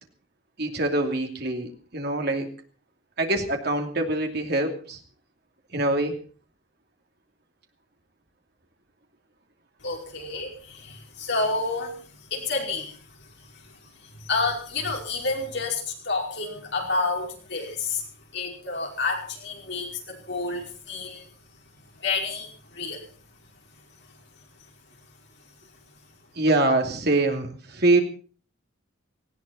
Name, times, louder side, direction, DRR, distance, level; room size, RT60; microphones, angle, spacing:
voice 1, 0.6-2.5 3.2-5.0 5.7-6.2 26.4-28.0, right 2 dB, 50° right, 4 dB, 2.8 m, -24 dB
voice 2, 9.8-18.0 18.3-21.3 21.9-23.1, left 3 dB, 55° left, 1 dB, 5.3 m, -30 dB
19.0 x 16.5 x 4.2 m, 0.40 s
head